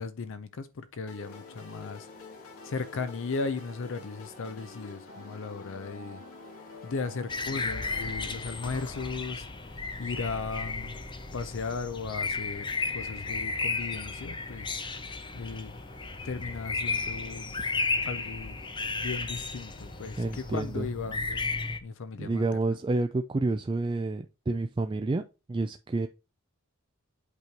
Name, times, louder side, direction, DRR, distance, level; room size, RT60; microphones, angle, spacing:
voice 1, 0.0-2.1 2.6-6.2 6.8-11.0 11.3-14.8 15.3-15.8 16.2-17.5 18.1-18.6 19.0-21.5 21.8-22.4, left 4 dB, 65° left, 0.5 m, -36 dB
sound 1, 1.1-9.1, left 3 dB, 80° left, 1.7 m, -48 dB
sound 2, 1.2-20.6, left 2 dB, 45° left, 1.4 m, -53 dB
sound 3, 7.3-21.8, left 3 dB, 20° left, 0.7 m, -34 dB
voice 2, 20.2-20.9 22.2-25.2 25.5-26.1, right 2 dB, 20° right, 0.3 m, -29 dB
8.3 x 3.1 x 5.1 m
head